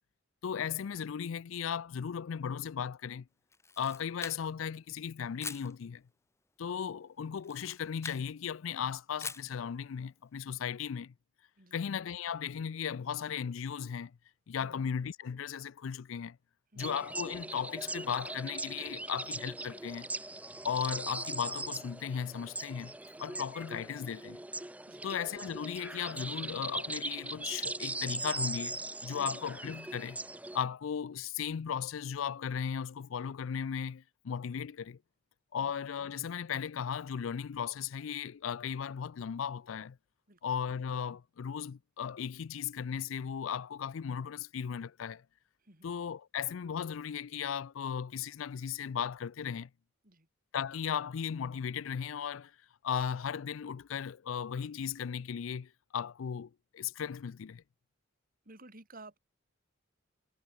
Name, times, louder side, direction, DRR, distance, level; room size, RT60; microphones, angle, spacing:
voice 1, 0.4-3.3 3.8-6.0 6.6-11.1 11.7-14.2 14.5-16.4 16.8-20.1 20.6-22.9 23.2-24.4 25.0-30.2 30.5-35.0 35.5-40.0 40.4-45.2 45.8-49.7 50.5-52.5 52.8-57.6, left 7 dB, 80° left, 0.4 m, -36 dB
Camera, 3.5-4.7 5.4-5.7 7.4-8.3 9.2-9.5, left 4 dB, 15° left, 1.5 m, -43 dB
sound 1, 16.8-30.6, right 2 dB, 5° right, 0.8 m, -40 dB
voice 2, 58.4-59.2, right 2 dB, 45° right, 5.8 m, -54 dB
head